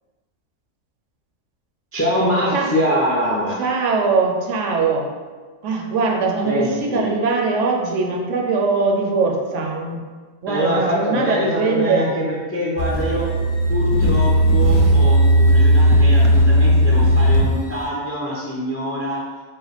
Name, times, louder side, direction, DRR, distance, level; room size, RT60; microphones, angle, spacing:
voice 1, 1.9-3.6 6.4-7.1 10.5-13.3 13.7-19.2, equal, 25° left, -5 dB, 0.3 m, -24 dB
voice 2, 3.6-5.1 5.6-10.0 10.4-12.1, right 4 dB, 75° right, 1 dB, 0.9 m, -21 dB
sound 1, 12.8-17.8, equal, 50° left, 0.7 m, -15 dB
4.1 x 2.2 x 4.0 m, 1.4 s
omnidirectional pair, 1.3 m